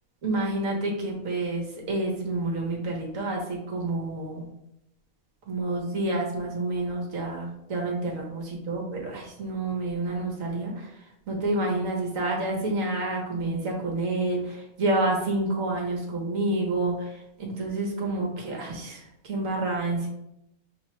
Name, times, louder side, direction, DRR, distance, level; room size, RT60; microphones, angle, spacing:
voice 1, 0.2-4.4 5.5-10.9 11.3-17.1 17.4-20.1, right 2 dB, 65° right, -1 dB, 1.5 m, -29 dB
5.9 x 2.3 x 3.1 m, 0.83 s
omnidirectional pair, 1.6 m